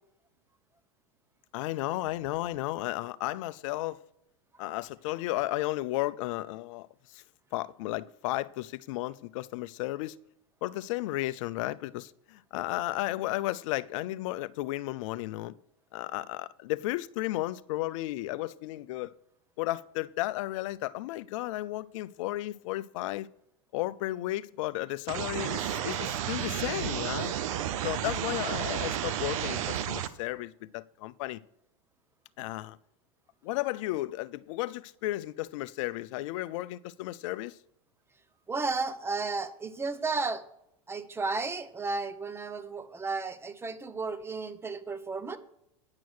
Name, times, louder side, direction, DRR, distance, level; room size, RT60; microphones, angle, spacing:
voice 1, 1.5-4.0 4.6-7.2 7.5-10.2 10.6-15.5 15.9-19.1 19.6-23.3 23.7-27.3 27.8-31.4 32.4-32.8 33.4-37.6, left 17 dB, 60° left, 0.5 m, -34 dB
sound 1, 25.1-30.1, right 10 dB, 65° right, 0.8 m, -32 dB
voice 2, 38.5-40.5 40.9-45.4, right 4 dB, 15° right, 0.8 m, -33 dB
9.6 x 6.2 x 6.4 m
hypercardioid pair, 105°, 18 cm